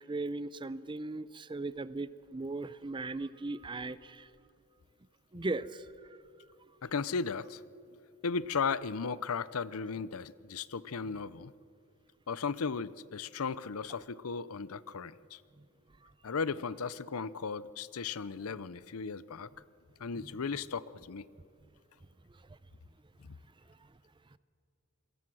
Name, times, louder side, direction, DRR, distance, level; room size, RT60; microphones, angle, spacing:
voice 1, 0.0-4.3 5.3-6.2 15.6-15.7 16.0-16.1 20.2-20.3 22.3-22.4 23.7-23.9 24.3-24.4, right 2 dB, 20° right, 16 dB, 0.5 m, -38 dB
voice 2, 6.8-7.6 8.2-11.5 12.3-15.4 16.2-19.5 20.0-21.2, left 5 dB, 75° left, 18 dB, 0.6 m, -36 dB
27.5 x 22.0 x 6.2 m, 2.5 s
head